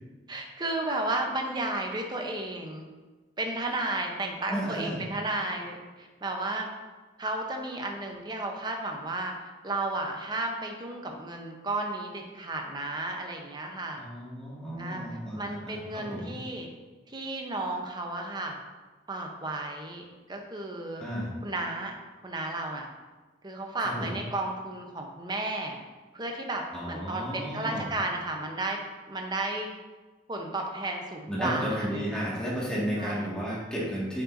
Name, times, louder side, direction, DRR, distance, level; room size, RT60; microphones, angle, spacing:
voice 1, 0.3-2.9 3.4-6.7 7.2-9.3 9.6-14.0 14.8-15.0 15.4-16.7 17.1-18.6 19.1-20.0 20.3-21.0 21.4-21.9 22.2-22.9 23.4-25.8 26.1-28.8 29.1-29.7 30.3-32.2 33.0-33.3, right 2 dB, 25° right, 2 dB, 0.7 m, -33 dB
voice 2, 4.5-5.0 14.0-16.3 21.0-21.3 23.8-24.2 26.7-27.9 31.3-34.2, equal, 5° left, -7 dB, 1.8 m, -33 dB
10.0 x 5.4 x 2.6 m, 1.3 s
head